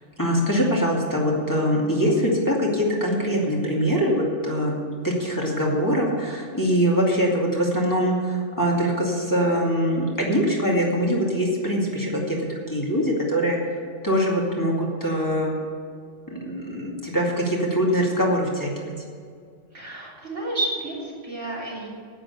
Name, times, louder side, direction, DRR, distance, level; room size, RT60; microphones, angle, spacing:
voice 1, 0.2-4.7 5.0-13.6 14.0-15.5 16.3-18.9, equal, 15° left, -4 dB, 2.4 m, -23 dB
voice 2, 19.7-21.9, right 2 dB, 80° right, -5 dB, 3.9 m, -30 dB
10.0 x 9.1 x 8.3 m, 2.1 s
omnidirectional pair, 1.2 m